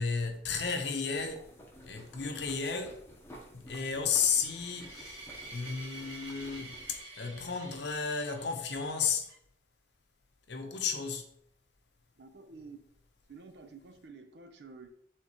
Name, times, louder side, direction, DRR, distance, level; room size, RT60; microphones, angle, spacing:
voice 1, 0.0-1.4 1.8-3.0 3.5-5.3 5.5-9.3 10.5-11.3, left 5 dB, 75° left, 0.7 m, -33 dB
sound 1, 1.1-7.0, equal, 15° left, 0.7 m, -53 dB
sound 2, 4.1-9.3, right 2 dB, 30° right, 1.4 m, -49 dB
voice 2, 12.2-12.8 13.3-14.9, right 4 dB, 70° right, 0.6 m, -50 dB
4.3 x 3.8 x 2.9 m
head